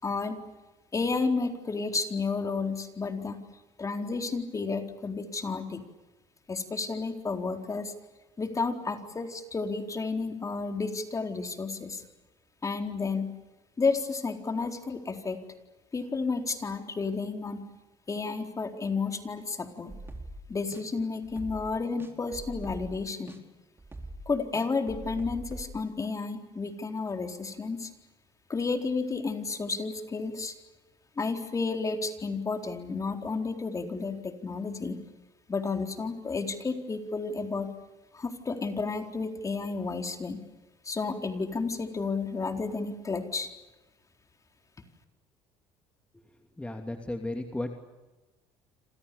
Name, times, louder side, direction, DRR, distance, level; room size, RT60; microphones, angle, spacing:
voice 1, 0.0-0.4 0.9-3.4 3.8-5.8 6.5-7.9 8.4-12.0 12.6-13.3 13.8-15.4 15.9-17.6 18.1-20.0 20.5-23.4 24.3-27.9 28.5-30.5 31.2-35.0 35.5-37.7 38.1-40.4 40.8-43.5, left 4 dB, 25° left, 5 dB, 4.2 m, -31 dB
sound 1, 19.9-20.4 20.7-20.8 21.2-21.7 22.0-23.0 23.3-23.4 23.8-25.7, right 1 dB, 20° right, 4.5 m, -42 dB
voice 2, 46.6-47.9, left 1 dB, 10° left, 4 dB, 3.0 m, -35 dB
28.5 x 27.5 x 7.0 m, 1.1 s
supercardioid pair, 85°, 12 cm